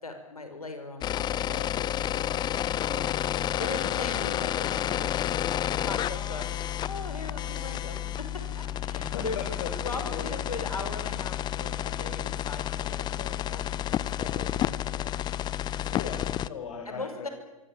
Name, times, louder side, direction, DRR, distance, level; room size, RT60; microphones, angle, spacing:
voice 1, 0.0-3.1 3.6-9.4 9.8-13.7 14.1-15.2 15.9-16.0 16.9-17.3, left 3 dB, 85° left, 7 dB, 6.3 m, -40 dB
sound 1, 1.0-16.5, left 11 dB, 25° left, 0.9 m, -30 dB
voice 2, 9.0-10.3 15.8-17.3, left 6 dB, 55° left, 4 dB, 5.5 m, -38 dB
25.5 x 24.0 x 9.2 m, 1.1 s
figure-of-eight pair, 105°, 18 cm